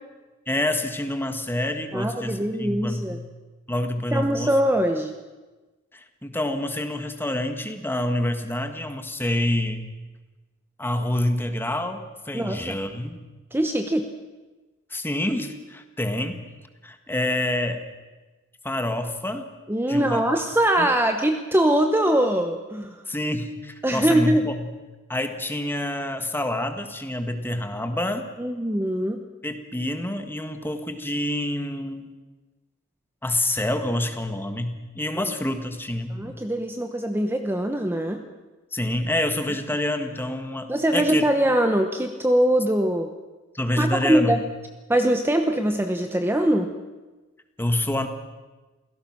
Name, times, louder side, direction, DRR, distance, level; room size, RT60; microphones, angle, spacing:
voice 1, 0.5-3.2 3.7-4.5 5.9-9.9 10.8-13.2 14.9-16.4 16.8-17.8 18.6-19.5 19.9-20.2 20.8-20.9 23.1-24.7 25.1-28.3 29.4-32.1 33.2-36.3 38.7-41.3 43.5-44.4 47.6-48.1, left 1 dB, 10° left, 7 dB, 1.7 m, -27 dB
voice 2, 1.9-3.2 4.1-5.2 12.3-12.8 13.5-14.1 19.7-23.0 23.8-24.5 28.4-29.2 35.2-35.3 36.1-38.2 40.7-43.1 43.8-44.4 44.9-46.7, right 1 dB, 10° right, 5 dB, 1.0 m, -22 dB
28.0 x 17.0 x 6.1 m, 1.2 s
head